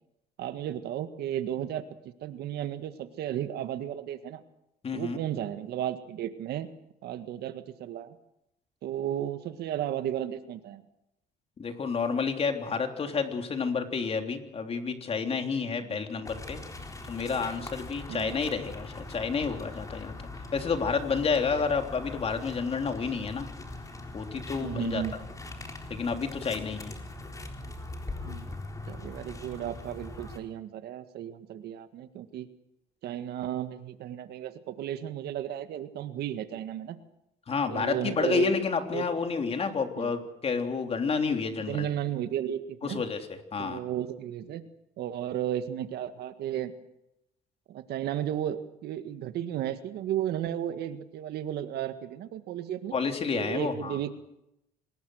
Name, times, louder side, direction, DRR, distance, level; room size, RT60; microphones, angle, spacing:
voice 1, 0.4-1.8 2.2-4.4 4.9-6.7 7.0-8.2 8.8-10.8 15.8-16.0 18.1-18.3 24.6-25.2 28.2-28.5 28.9-32.5 33.0-37.0 37.7-38.6 38.9-39.1 40.0-40.1 41.7-43.0 43.6-44.6 45.0-46.7 47.7-52.9 53.3-54.1, right 11 dB, 70° right, 9 dB, 1.8 m, -34 dB
voice 2, 4.8-5.2 11.6-16.6 17.1-20.1 20.5-23.5 24.1-25.0 25.9-27.0 37.5-41.9 42.8-43.8 52.9-54.0, left 5 dB, 35° left, 5 dB, 3.4 m, -30 dB
sound 1, 16.3-30.4, left 2 dB, 20° left, 4.0 m, -41 dB
26.0 x 20.5 x 6.4 m, 0.84 s
cardioid pair, 110°, 17 cm